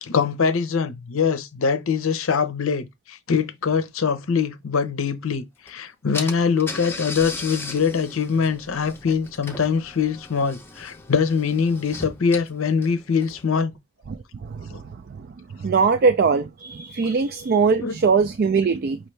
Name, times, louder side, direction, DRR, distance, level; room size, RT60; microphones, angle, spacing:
voice 1, 0.0-13.7 14.7-14.8 17.8-17.9, left 6 dB, 65° left, 0.6 m, -23 dB
Car / Engine, 5.7-5.8 6.1-13.6, left 3 dB, 10° left, 0.6 m, -37 dB
voice 2, 14.4-14.8 15.2-15.3 15.6-19.0, right 5 dB, 45° right, 0.3 m, -21 dB
5.4 x 2.6 x 3.2 m
head